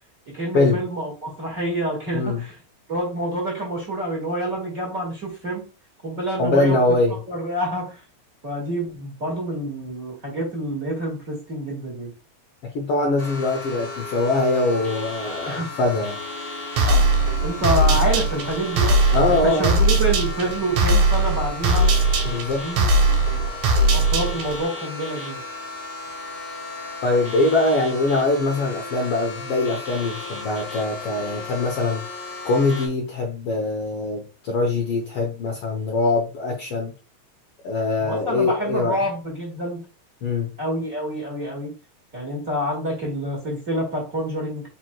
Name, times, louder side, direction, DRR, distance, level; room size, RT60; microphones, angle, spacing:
voice 1, 0.3-2.5 2.9-5.7 6.0-6.8 7.3-8.0 8.4-12.1 15.5-15.7 16.8-17.1 17.4-19.0 19.3-21.9 22.6-23.6 23.9-25.4 38.0-39.9 40.6-41.7 42.1-44.6, right 1 dB, 35° right, -2 dB, 1.7 m, -27 dB
voice 2, 2.1-2.4 6.4-7.2 12.7-16.2 19.1-19.7 22.2-22.6 27.0-32.1 32.4-36.9 37.6-39.0 40.2-40.5, left 2 dB, 70° left, 0 dB, 1.4 m, -22 dB
sound 1, 13.2-32.9, left 3 dB, 30° left, 1.1 m, -35 dB
sound 2, 16.8-24.6, right 2 dB, 80° right, 2.2 m, -20 dB
5.0 x 4.4 x 2.2 m, 0.32 s
omnidirectional pair, 3.3 m